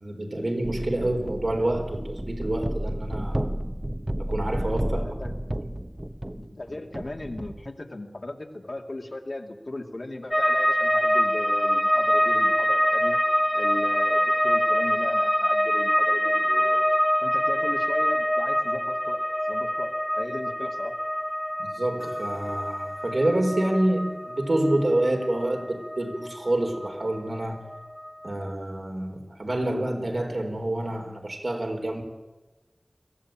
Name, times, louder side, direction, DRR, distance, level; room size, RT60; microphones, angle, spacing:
voice 1, 0.0-3.5 4.2-5.0 5.6-5.7 21.6-27.7 28.2-32.0, right 1 dB, 75° right, 2 dB, 4.2 m, -27 dB
sound 1, 0.6-7.7, right 1 dB, 30° right, 1.1 m, -32 dB
voice 2, 4.8-5.4 6.4-13.2 13.5-16.9 17.2-21.0, left 2 dB, 75° left, 2 dB, 2.5 m, -37 dB
sound 2, 10.3-27.4 27.7-28.4, equal, 10° left, 0.9 m, -25 dB
22.5 x 15.5 x 9.0 m, 1.1 s
wide cardioid pair, 40°, 0 cm